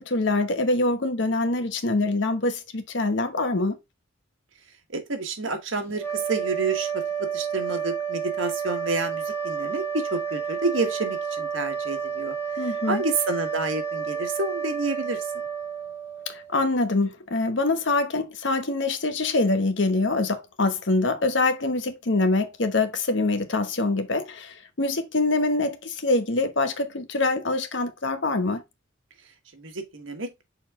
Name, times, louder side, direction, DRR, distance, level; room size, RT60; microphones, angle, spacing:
voice 1, 0.0-3.8 12.6-13.0 16.3-28.6, left 2 dB, 65° left, 1.0 m, -24 dB
voice 2, 4.9-15.4 29.5-30.4, right 3 dB, 90° right, 1.5 m, -29 dB
sound 1, 5.9-16.6, right 7 dB, 10° left, 1.2 m, -30 dB
6.6 x 4.1 x 3.7 m
head